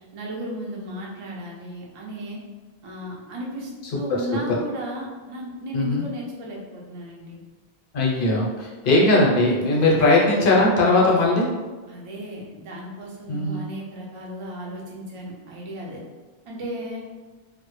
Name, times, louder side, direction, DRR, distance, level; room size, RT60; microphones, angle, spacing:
voice 1, 0.1-2.4 2.8-7.4 11.9-16.0 16.4-17.0, equal, 50° right, -3 dB, 0.4 m, -35 dB
voice 2, 5.7-6.0 7.9-11.5 13.3-13.6, left 2 dB, 60° left, -3 dB, 0.7 m, -19 dB
2.1 x 2.0 x 3.0 m, 1.3 s
omnidirectional pair, 1.0 m